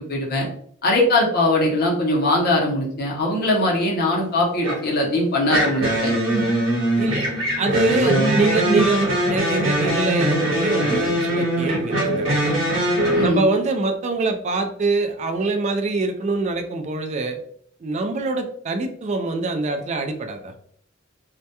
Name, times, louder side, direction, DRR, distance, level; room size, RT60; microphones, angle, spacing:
voice 1, 0.1-0.5 0.8-6.4 8.0-8.9 13.1-13.4, left 1 dB, 50° left, -2 dB, 0.7 m, -21 dB
sound 1, 4.6-4.9 5.5-13.3, right 1 dB, 70° right, 1.1 m, -21 dB
voice 2, 7.6-12.6 13.2-17.4 17.8-20.5, right 3 dB, 35° right, 5 dB, 0.3 m, -24 dB
2.2 x 2.2 x 2.7 m, 0.62 s
head